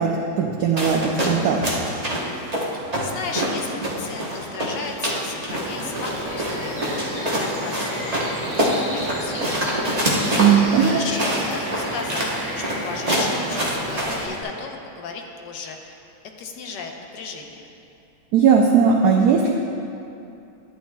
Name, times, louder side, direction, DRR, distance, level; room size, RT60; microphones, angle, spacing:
voice 1, 0.0-1.7 10.4-11.0 18.3-19.5, right 6 dB, 80° right, 1 dB, 0.8 m, -18 dB
sound 1, 0.8-14.4, equal, 35° right, 0.6 m, -26 dB
voice 2, 2.6-7.0 7.2-8.5 8.7-10.2 10.7-12.3 12.5-16.0 16.4-17.6, left 5 dB, 70° left, 2 dB, 1.2 m, -35 dB
sound 2, 5.5-14.3, equal, 15° right, 1.7 m, -31 dB
11.0 x 9.1 x 2.2 m, 2.7 s
omnidirectional pair, 2.2 m